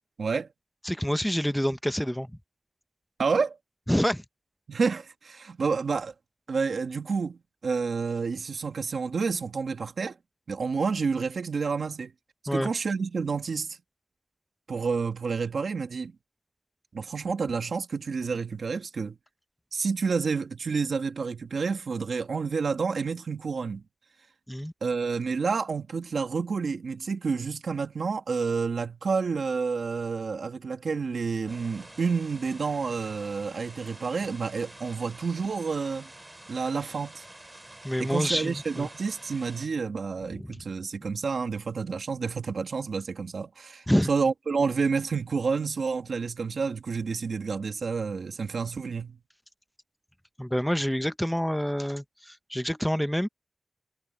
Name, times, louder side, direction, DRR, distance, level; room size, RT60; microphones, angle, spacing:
voice 1, 0.8-2.3 3.9-4.2 12.5-12.7 24.5-24.7 37.8-38.9 40.3-40.6 43.9-44.1 50.4-53.3, equal, 5° left, 0.8 m, -27 dB
voice 2, 3.2-3.6 4.7-6.1 6.5-10.2 10.5-12.1 12.5-13.8 14.7-16.1 16.9-19.2 19.7-23.8 24.8-36.1 36.5-37.2 38.0-49.2, right 5 dB, 90° right, 1.7 m, -29 dB
sound 1, 31.5-39.7, right 1 dB, 20° right, 2.8 m, -48 dB
wide cardioid pair, 75°, 0 cm